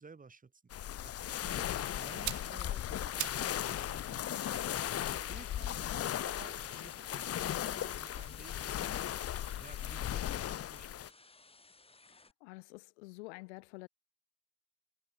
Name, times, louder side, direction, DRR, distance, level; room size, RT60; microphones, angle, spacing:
voice 1, 0.0-11.1, right 4 dB, 25° right, 5.3 m, -56 dB
sound 1, 0.7-11.1, left 11 dB, 45° left, 1.4 m, -37 dB
sound 2, 2.1-3.6 3.9-7.1 7.9-10.0 10.3-10.4, right 16 dB, 55° right, 1.8 m, -46 dB
sound 3, 11.0-12.3, left 3 dB, 15° left, 6.8 m, -61 dB
voice 2, 12.4-13.9, left 25 dB, 75° left, 3.3 m, -48 dB
hypercardioid pair, 75°, 35 cm